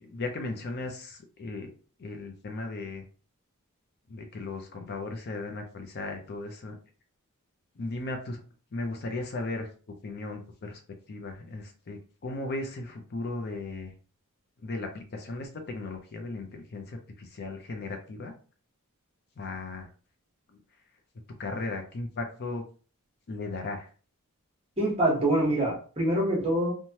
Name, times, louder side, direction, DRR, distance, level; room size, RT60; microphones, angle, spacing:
voice 1, 0.0-1.7 2.0-3.0 4.1-6.8 7.8-8.4 8.7-9.7 10.0-10.8 11.1-13.9 14.6-18.3 19.4-19.9 21.4-22.6 23.3-23.9, left 2 dB, 45° left, 4 dB, 0.4 m, -36 dB
voice 2, 24.8-26.7, right 1 dB, 25° right, -2 dB, 1.0 m, -25 dB
3.0 x 2.2 x 2.7 m, 0.39 s
head